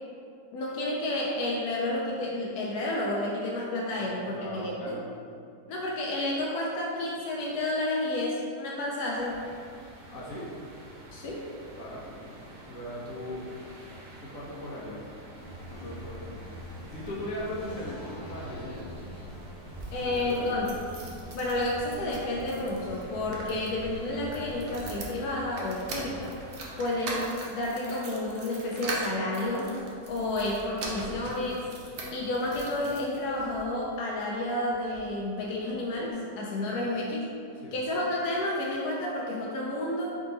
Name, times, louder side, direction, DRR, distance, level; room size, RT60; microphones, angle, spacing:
voice 1, 0.5-4.9 5.7-9.4 11.1-11.5 19.9-20.7 21.3-26.4 26.8-29.7 30.1-31.7 32.1-37.3 37.7-40.1, left 1 dB, 70° left, -3 dB, 1.0 m, -30 dB
voice 2, 4.0-5.0 10.1-10.5 11.8-13.5 14.2-15.0 15.5-18.8 20.0-20.5 36.8-36.9 37.6-37.7, left 1 dB, 55° left, -6 dB, 1.2 m, -39 dB
sound 1, 9.1-26.9, right 1 dB, 55° right, 1.1 m, -50 dB
sound 2, 15.3-24.7, equal, 15° right, 0.8 m, -44 dB
sound 3, 19.6-33.6 34.2-35.1 35.4-35.5 35.7-35.8, right 2 dB, 75° right, 0.6 m, -41 dB
3.8 x 3.6 x 3.9 m, 2.4 s
omnidirectional pair, 2.0 m